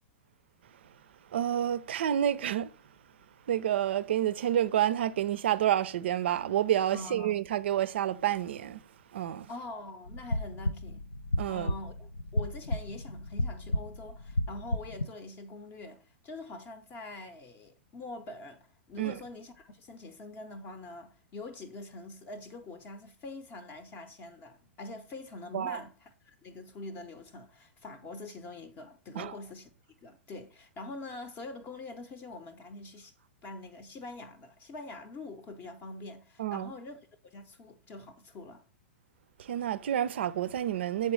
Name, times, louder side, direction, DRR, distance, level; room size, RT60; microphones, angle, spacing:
voice 1, 1.3-2.7 3.5-8.8 9.1-9.5 11.4-11.7 19.0-19.1 25.5-25.8 29.2-29.3 36.4-36.7 39.4-41.1, right 11 dB, 60° right, 0.4 m, -29 dB
voice 2, 6.9-7.3 9.5-11.0 11.5-29.7 30.0-33.1 33.4-38.6, left 2 dB, 30° left, 0.6 m, -44 dB
sound 1, 10.1-15.0, left 1 dB, 85° left, 0.4 m, -33 dB
6.9 x 4.4 x 3.1 m
figure-of-eight pair, 105°, 7 cm